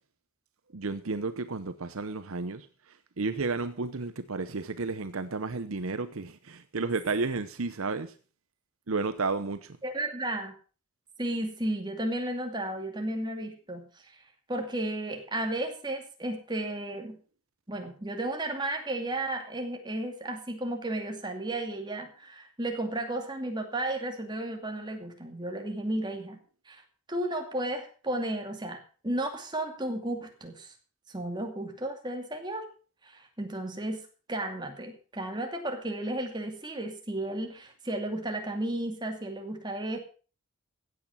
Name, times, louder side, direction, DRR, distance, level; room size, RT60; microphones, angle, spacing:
voice 1, 0.7-2.7 3.2-8.1 8.9-9.8, right 3 dB, 65° right, 0.8 m, -32 dB
voice 2, 9.8-10.5 11.2-13.9 14.1-14.2 14.5-17.2 17.7-26.4 26.7-26.8 27.1-30.7 31.1-32.6 33.0-34.0 34.3-40.0, right 1 dB, 20° right, 2.4 m, -33 dB
15.5 x 8.7 x 5.6 m
head